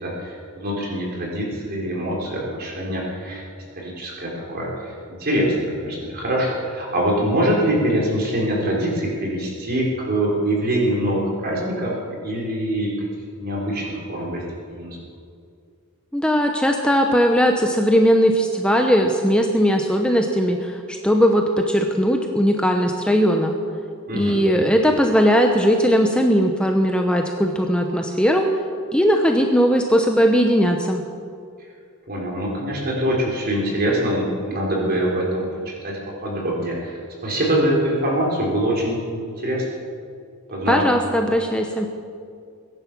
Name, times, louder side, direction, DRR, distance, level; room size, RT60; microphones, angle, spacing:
voice 1, 0.0-3.4 3.8-4.9 5.2-11.9 12.2-13.1 13.4-14.4 14.7-15.0 24.1-24.3 32.1-39.0 39.2-39.6 40.5-40.9, right 1 dB, 45° right, -2 dB, 4.1 m, -24 dB
voice 2, 16.1-23.5 24.1-28.5 28.9-31.0 40.7-41.9, equal, 5° left, 3 dB, 0.8 m, -18 dB
22.5 x 10.5 x 6.1 m, 2.3 s
head